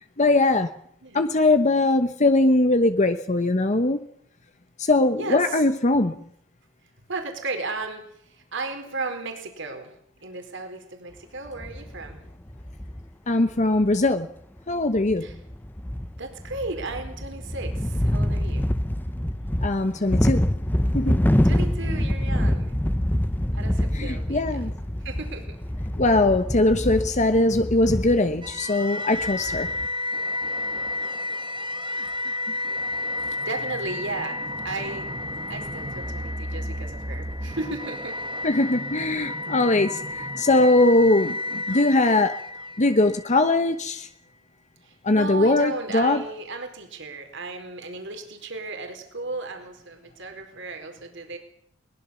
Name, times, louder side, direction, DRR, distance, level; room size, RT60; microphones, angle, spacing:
voice 1, 0.2-0.7 1.1-4.1 4.8-6.2 13.3-14.3 14.7-15.3 19.6-20.5 20.9-21.2 23.9-24.7 26.0-29.7 38.4-42.4 42.8-44.1 45.0-46.2, left 2 dB, 35° left, 1.0 m, -21 dB
voice 2, 5.2-5.6 7.1-8.0 8.5-9.9 10.2-12.2 15.2-15.3 16.2-18.7 21.4-22.8 23.5-24.6 25.0-25.6 33.4-34.4 34.6-35.1 35.5-38.2 44.8-51.4, right 3 dB, 65° right, 4.4 m, -35 dB
sound 1, 11.5-13.0 13.5-13.6 13.8-13.9 14.7-14.8 15.0-28.5 29.2-29.9, equal, 10° left, 0.8 m, -26 dB
sound 2, 28.4-43.6, left 1 dB, 25° right, 1.6 m, -31 dB
22.0 x 20.5 x 7.1 m
head